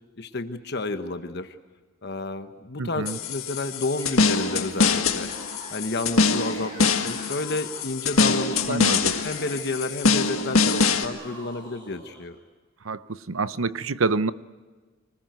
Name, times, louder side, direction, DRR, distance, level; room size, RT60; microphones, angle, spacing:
voice 1, 0.2-1.5 2.0-5.3 5.7-8.8 9.2-12.4, left 2 dB, 55° left, 8 dB, 1.1 m, -31 dB
voice 2, 2.8-3.2 8.7-9.1 12.8-14.3, right 3 dB, 80° right, 15 dB, 0.8 m, -27 dB
sound 1, 3.1-11.1, left 4 dB, 85° left, 1.7 m, -24 dB
Yell / Screaming, 4.0-12.3, right 1 dB, 25° right, 7.1 m, -45 dB
25.0 x 20.0 x 9.4 m, 1.4 s
head